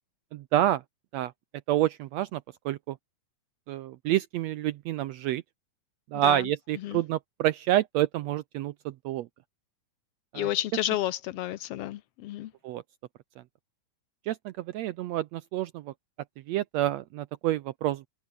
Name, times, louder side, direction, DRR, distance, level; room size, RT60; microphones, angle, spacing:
voice 1, 0.3-0.8 1.1-1.3 1.7-3.0 3.7-5.4 6.1-9.3 10.3-10.5 12.6-12.8 13.4-13.5 14.3-15.9 16.5-18.0, right 13 dB, 80° right, 1.5 m, -28 dB
voice 2, 10.3-12.5, left 13 dB, 85° left, 1.3 m, -31 dB
omnidirectional pair, 3.7 m